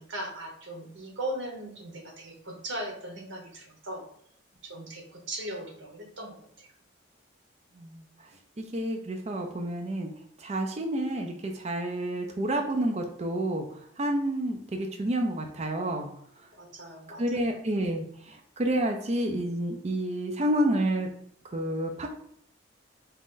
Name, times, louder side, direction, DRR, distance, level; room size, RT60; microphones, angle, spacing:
voice 1, 0.0-4.1 4.6-6.7 16.5-17.2, right 1 dB, 70° right, 2 dB, 1.1 m, -38 dB
voice 2, 8.6-10.1 10.4-16.1 17.2-21.1 21.5-22.1, right 1 dB, 35° right, 3 dB, 0.4 m, -29 dB
4.0 x 2.5 x 3.7 m, 0.67 s
head